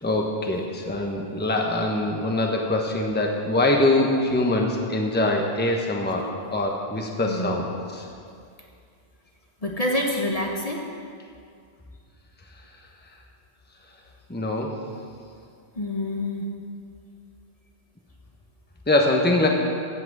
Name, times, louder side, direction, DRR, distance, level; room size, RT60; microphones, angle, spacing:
voice 1, 0.0-8.1 14.3-14.8 18.9-19.5, left 2 dB, 10° left, 1 dB, 1.1 m, -23 dB
voice 2, 7.2-7.6 9.6-10.8 15.7-16.5, left 1 dB, 35° left, 0 dB, 1.2 m, -27 dB
16.0 x 6.0 x 7.3 m, 2.3 s
omnidirectional pair, 1.1 m